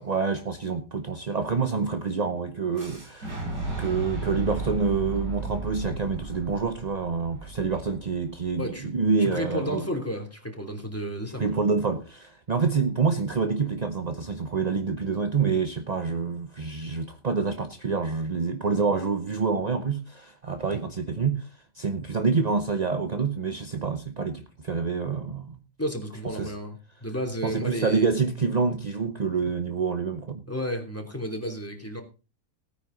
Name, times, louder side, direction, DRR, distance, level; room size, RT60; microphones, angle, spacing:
voice 1, 0.0-3.4 3.8-9.9 11.4-21.5 21.8-25.6 26.4-26.5 27.4-30.4, right 5 dB, 40° right, 0.6 m, -27 dB
Boom, 2.7-8.6, right 3 dB, 75° right, 7.8 m, -34 dB
voice 2, 8.5-8.9 9.2-11.6 25.8-28.1 30.5-32.0, equal, 10° left, 2.9 m, -32 dB
17.5 x 9.7 x 3.8 m
omnidirectional pair, 1.9 m